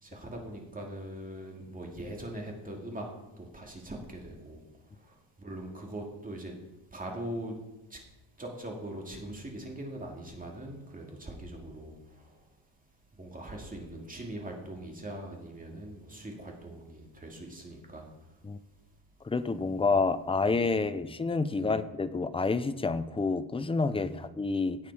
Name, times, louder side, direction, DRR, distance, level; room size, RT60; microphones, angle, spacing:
voice 1, 0.0-3.1 3.4-4.6 5.0-6.5 6.9-7.5 7.9-8.0 8.4-11.9 12.2-12.4 13.2-18.1 20.4-21.0 21.5-21.7 23.9-24.2, right 1 dB, 20° right, 0 dB, 2.4 m, -41 dB
voice 2, 19.3-24.9, left 4 dB, 15° left, 12 dB, 0.4 m, -29 dB
17.0 x 8.8 x 4.8 m, 0.99 s
cardioid pair, 155°, 45 cm